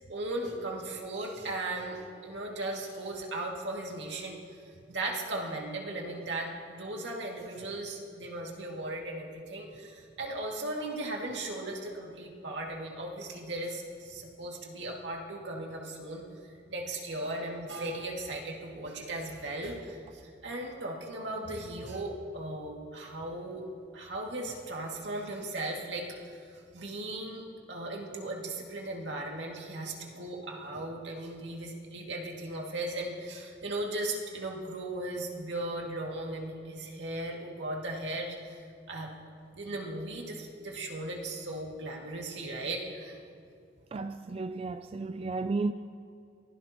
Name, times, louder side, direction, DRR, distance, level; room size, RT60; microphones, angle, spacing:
voice 1, 0.1-4.4 4.9-16.2 16.7-23.7 23.9-27.4 27.7-38.6 38.9-39.1 39.5-43.2, right 2 dB, 80° right, 2.2 m, -37 dB
voice 2, 43.9-45.7, right 3 dB, 30° right, 0.3 m, -33 dB
22.5 x 16.0 x 3.0 m
head